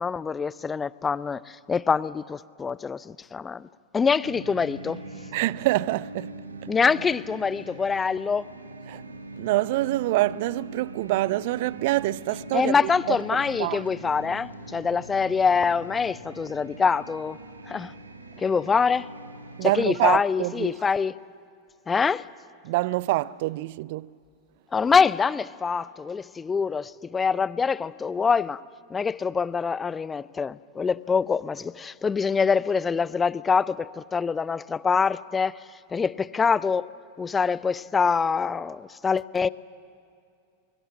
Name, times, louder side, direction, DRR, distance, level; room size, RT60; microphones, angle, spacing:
voice 1, 0.0-3.7 3.9-5.0 6.7-8.4 12.5-17.4 17.7-17.9 18.4-19.1 19.6-21.2 21.9-22.3 24.7-28.6 28.9-35.6 35.9-36.9 37.2-39.5, left 5 dB, 15° left, 0.5 m, -25 dB
sound 1, 4.2-19.7, right 2 dB, 75° right, 1.6 m, -42 dB
voice 2, 5.3-6.3 8.9-9.0 9.4-13.2 13.6-13.8 19.6-20.8 22.6-24.1, right 18 dB, 50° right, 0.4 m, -26 dB
23.0 x 22.5 x 7.6 m
figure-of-eight pair, 90°, 0 cm